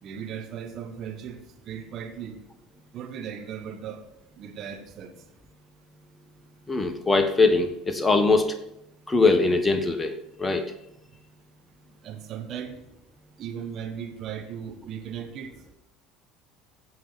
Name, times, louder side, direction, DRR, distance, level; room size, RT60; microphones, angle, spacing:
voice 1, 0.0-1.4 1.6-2.4 2.9-4.0 4.4-5.1 12.0-12.8 13.4-15.5, right 8 dB, 45° right, 6 dB, 1.6 m, -37 dB
voice 2, 6.7-8.5 9.1-10.6, left 3 dB, 15° left, 8 dB, 1.4 m, -22 dB
15.5 x 5.5 x 6.0 m, 0.87 s
figure-of-eight pair, 65°, 0 cm